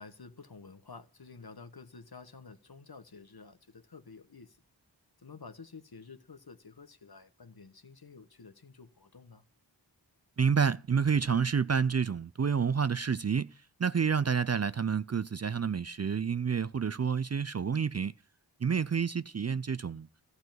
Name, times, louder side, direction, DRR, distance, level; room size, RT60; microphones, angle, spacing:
voice 1, 0.0-4.6 5.2-9.4, left 4 dB, 60° left, 1.3 m, -51 dB
voice 2, 10.4-13.5 13.8-18.1 18.6-20.1, right 6 dB, 40° right, 0.4 m, -29 dB
14.0 x 4.8 x 7.7 m
wide cardioid pair, 45°, 42 cm